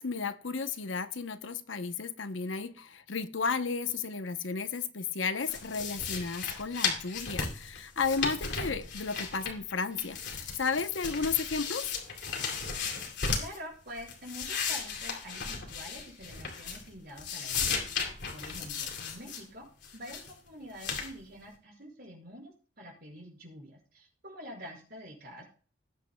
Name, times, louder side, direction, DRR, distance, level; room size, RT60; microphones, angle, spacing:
voice 1, 0.0-11.9, left 5 dB, 90° left, 0.8 m, -33 dB
sound 1, 5.4-9.7 10.0-13.6 14.0-16.9 17.2-19.4 19.8-20.3 20.8-21.1, left 5 dB, 65° left, 2.8 m, -35 dB
voice 2, 13.3-19.7 19.9-25.4, equal, 55° right, 5.6 m, -47 dB
20.0 x 8.5 x 2.3 m
head